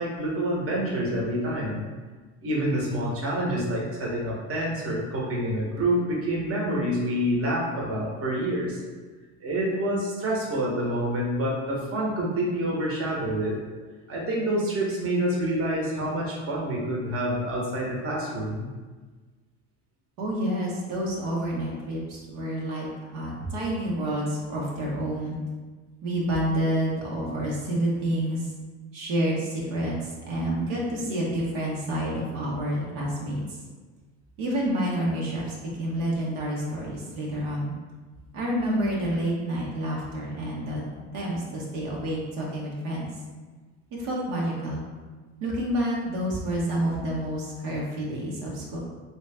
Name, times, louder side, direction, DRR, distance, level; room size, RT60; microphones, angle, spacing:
voice 1, 0.0-1.8 2.4-8.8 9.4-13.5 14.1-18.7, right 1 dB, 35° right, -3 dB, 1.1 m, -27 dB
voice 2, 20.2-25.4 26.0-28.5 28.9-33.6 34.4-37.7 38.3-40.8 41.1-43.1 44.0-44.8 45.4-48.8, right 1 dB, 75° right, -4 dB, 1.1 m, -29 dB
3.1 x 2.9 x 3.4 m, 1.4 s
supercardioid pair, 90°, 38 cm